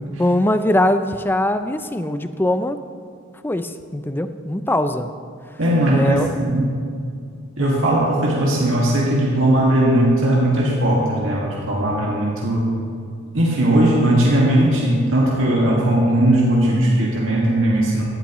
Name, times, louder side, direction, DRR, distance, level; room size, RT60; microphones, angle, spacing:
voice 1, 0.2-2.8 3.4-5.1 5.9-6.3 7.6-7.8, left 1 dB, 10° left, 9 dB, 0.4 m, -21 dB
voice 2, 5.6-6.8 7.6-12.7 13.3-18.0, right 1 dB, 75° right, -5 dB, 1.9 m, -18 dB
16.5 x 12.0 x 3.1 m, 2.3 s
head